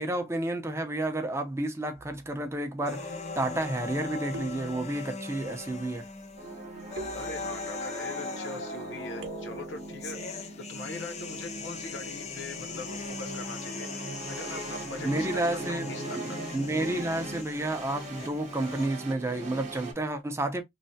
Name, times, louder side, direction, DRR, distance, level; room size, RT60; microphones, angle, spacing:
voice 1, 0.0-6.0 15.0-15.9 16.2-20.6, right 1 dB, 15° right, 0.5 m, -31 dB
sound 1, 1.9-2.5 4.3-5.3 7.0-7.9 9.2-9.9, right 2 dB, 70° right, 0.6 m, -44 dB
sound 2, 2.9-18.9, left 4 dB, 35° left, 0.5 m, -40 dB
sound 3, 6.4-19.9, right 2 dB, 40° right, 0.9 m, -40 dB
voice 2, 7.1-10.2 10.7-13.9 14.3-16.2, left 2 dB, 75° left, 0.7 m, -41 dB
3.2 x 2.1 x 2.6 m
head